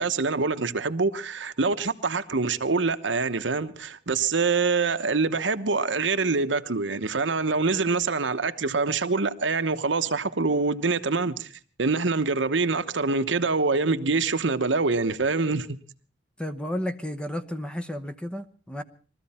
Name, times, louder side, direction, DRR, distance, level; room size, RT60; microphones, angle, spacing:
voice 1, 0.0-11.5 11.8-15.8, right 4 dB, 80° right, 1.0 m, -25 dB
voice 2, 16.4-18.8, equal, 5° left, 0.9 m, -32 dB
22.0 x 14.0 x 4.3 m
head